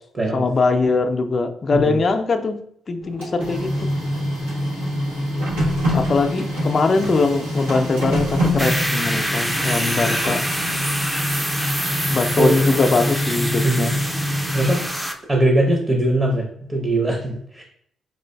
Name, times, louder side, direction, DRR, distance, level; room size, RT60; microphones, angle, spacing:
voice 1, 0.3-2.6 2.9-3.9 5.9-10.4 12.1-13.9, left 3 dB, 45° left, 7 dB, 0.4 m, -21 dB
Printer, 3.0-15.1, equal, 90° right, 1.0 m, -25 dB
sound 1, 8.6-15.1, equal, 10° right, 0.5 m, -26 dB
voice 2, 15.3-17.6, right 1 dB, 30° right, 1 dB, 0.8 m, -21 dB
4.7 x 2.4 x 2.2 m, 0.68 s
hypercardioid pair, 45°, 0 cm